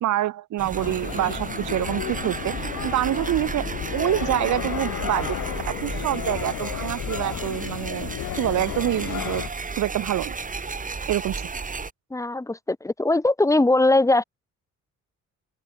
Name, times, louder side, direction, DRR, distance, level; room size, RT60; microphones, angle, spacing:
voice 1, 0.0-2.5 2.8-5.4 5.7-8.1 8.4-9.4 9.8-10.3 11.1-11.5, right 14 dB, 70° right, 1.1 m, -26 dB
sound 1, 0.6-11.9, right 4 dB, 25° right, 2.6 m, -33 dB
sound 2, 0.8-9.5, left 13 dB, 80° left, 6.7 m, -33 dB
voice 2, 12.1-14.2, left 2 dB, 10° left, 1.7 m, -20 dB
open air
cardioid pair, 90°, 30 cm